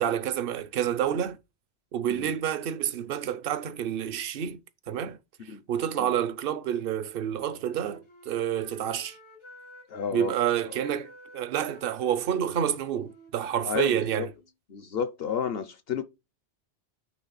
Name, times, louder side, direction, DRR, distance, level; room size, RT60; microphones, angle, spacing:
voice 1, 0.0-1.4 1.9-4.6 4.9-5.2 5.5-9.2 10.1-14.3, right 9 dB, 60° right, 0.8 m, -29 dB
Wind instrument woodwind instrument, 7.2-10.2 10.6-14.5, left 1 dB, 85° left, 2.5 m, -51 dB
voice 2, 9.9-10.4 10.6-10.7 13.7-14.3 14.7-16.0, left 7 dB, 65° left, 1.0 m, -32 dB
9.4 x 3.2 x 4.0 m
omnidirectional pair, 1.1 m